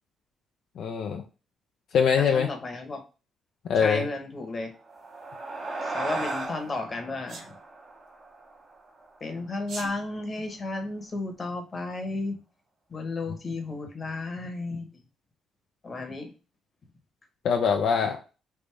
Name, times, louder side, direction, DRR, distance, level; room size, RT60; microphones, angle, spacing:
voice 1, 0.8-1.2 1.9-2.5 3.7-4.0 17.4-18.2, left 6 dB, 70° left, 3 dB, 0.5 m, -23 dB
voice 2, 2.2-3.0 3.7-4.7 5.8-7.6 9.2-12.4 12.9-15.0 15.8-16.3, left 2 dB, 35° left, 4 dB, 1.1 m, -33 dB
sound 1, 4.7-9.5, right 2 dB, 55° right, 0.8 m, -36 dB
Sneeze, 7.3-7.5 9.6-9.9, right 3 dB, 75° right, 1.2 m, -39 dB
3.4 x 2.6 x 3.3 m, 0.32 s
cardioid pair, 90°, 0 cm